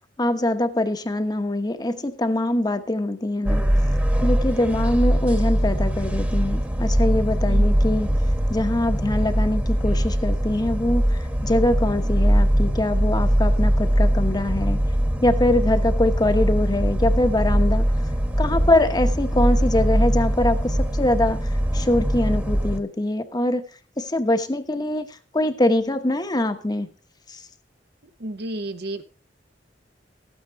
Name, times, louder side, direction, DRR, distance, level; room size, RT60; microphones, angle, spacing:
voice 1, 0.2-3.6 4.2-8.1 8.5-14.8 15.2-17.9 18.4-23.6 24.0-25.1 25.3-26.9 27.3-27.4, left 1 dB, 20° left, 8 dB, 1.0 m, -23 dB
sound 1, 3.4-22.8, equal, 10° right, 1.3 m, -21 dB
voice 2, 28.2-29.0, right 1 dB, 65° right, 9 dB, 1.0 m, -31 dB
13.5 x 9.3 x 4.6 m, 0.38 s
head